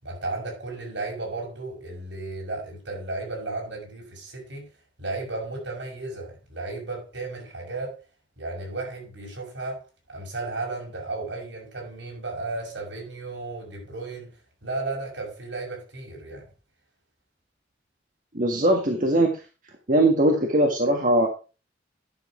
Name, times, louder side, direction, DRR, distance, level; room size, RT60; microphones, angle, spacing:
voice 1, 0.0-4.7 5.0-8.0 8.4-9.8 10.1-14.3 14.6-16.4, right 2 dB, 80° right, 5.9 m, -34 dB
voice 2, 18.3-19.4 19.9-21.3, right 1 dB, 45° right, 1.7 m, -20 dB
11.0 x 6.7 x 4.9 m
head